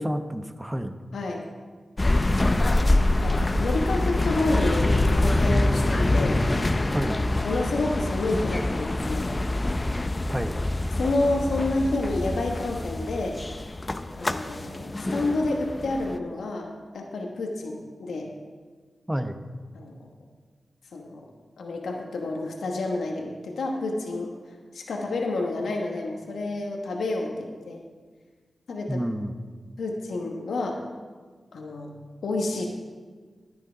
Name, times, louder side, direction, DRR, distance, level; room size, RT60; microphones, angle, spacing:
voice 1, 0.0-1.0 6.9-7.2 10.3-10.6 19.1-19.4 28.9-29.3, equal, 15° right, 8 dB, 0.9 m, -29 dB
voice 2, 1.1-1.5 2.1-6.4 7.4-9.3 10.9-13.6 14.1-18.3 19.7-20.0 20.9-21.2 21.6-24.3 24.7-27.8 28.7-29.0 29.8-30.8 31.5-31.9 32.2-32.7, left 2 dB, 85° left, 1 dB, 1.1 m, -29 dB
sound 1, 2.0-16.2, left 2 dB, 35° left, 0.6 m, -25 dB
10.5 x 9.3 x 4.9 m, 1.5 s
cardioid pair, 45°, 0 cm